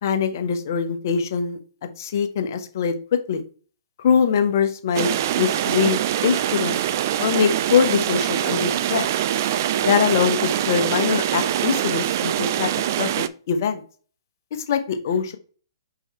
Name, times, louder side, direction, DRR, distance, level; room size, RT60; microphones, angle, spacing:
voice 1, 0.0-1.6 2.0-2.9 3.3-3.4 4.0-5.1 5.4-6.8 7.2-9.1 9.8-12.7 13.0-13.8 14.7-15.4, left 7 dB, 50° left, 7 dB, 1.1 m, -22 dB
sound 1, 4.9-13.3, right 11 dB, 45° right, 0.5 m, -24 dB
5.5 x 4.7 x 4.3 m, 0.41 s
figure-of-eight pair, 125°, 2 cm